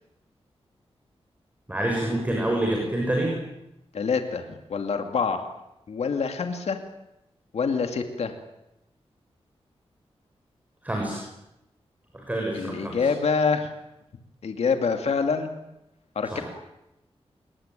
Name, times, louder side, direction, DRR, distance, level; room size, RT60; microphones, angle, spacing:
voice 1, 1.7-3.3 10.8-11.2 12.1-13.1 16.3-16.4, right 1 dB, 15° right, 0 dB, 6.5 m, -27 dB
voice 2, 3.9-5.4 5.9-6.8 7.5-8.3 12.5-13.7 14.4-15.5 16.2-16.4, left 5 dB, 80° left, 5 dB, 2.5 m, -26 dB
26.5 x 22.0 x 9.2 m, 0.89 s
wide cardioid pair, 155°, 11 cm